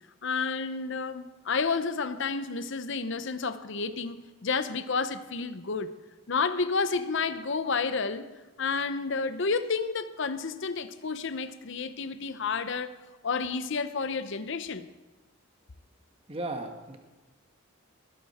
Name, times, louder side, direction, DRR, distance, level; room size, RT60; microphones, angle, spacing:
voice 1, 0.2-6.0 6.3-8.3 8.6-12.9 13.2-14.9, left 4 dB, 60° left, 0.7 m, -30 dB
voice 2, 16.3-17.0, right 2 dB, 30° right, 1.3 m, -35 dB
19.5 x 11.5 x 4.3 m
head